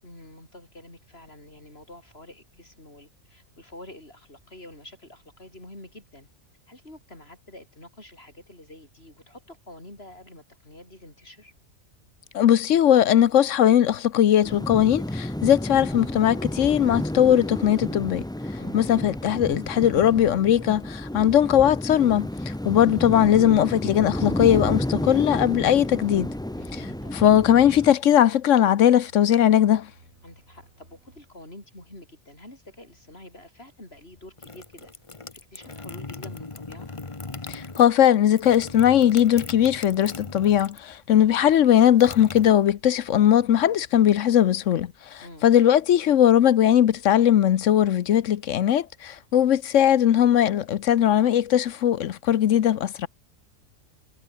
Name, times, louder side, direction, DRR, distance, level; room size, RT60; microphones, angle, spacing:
voice 1, 0.0-6.3 6.7-11.5 18.6-18.8 26.6-27.3 30.2-34.9 35.3-36.9 45.2-45.5, left 1 dB, 50° left, 7.0 m, -47 dB
voice 2, 12.3-18.2 18.7-22.3 22.6-26.3 27.1-29.9 37.5-53.1, left 10 dB, 70° left, 1.1 m, -19 dB
sound 1, 14.4-27.9, left 1 dB, 5° left, 0.3 m, -31 dB
sound 2, 23.5-31.2, right 1 dB, 85° right, 8.6 m, -56 dB
sound 3, 34.2-40.9 41.2-43.1, left 3 dB, 25° left, 1.4 m, -39 dB
omnidirectional pair, 1.4 m